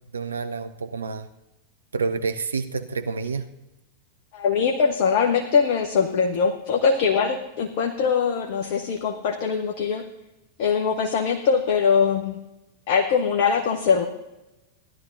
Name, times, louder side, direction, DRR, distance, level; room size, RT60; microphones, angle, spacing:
voice 1, 0.1-1.3 1.9-3.5, right 4 dB, 75° right, 9 dB, 0.4 m, -28 dB
voice 2, 4.3-10.0 10.6-12.4 12.9-14.0, left 6 dB, 50° left, 4 dB, 0.8 m, -22 dB
17.0 x 11.0 x 2.6 m, 0.98 s
figure-of-eight pair, 90°, 0 cm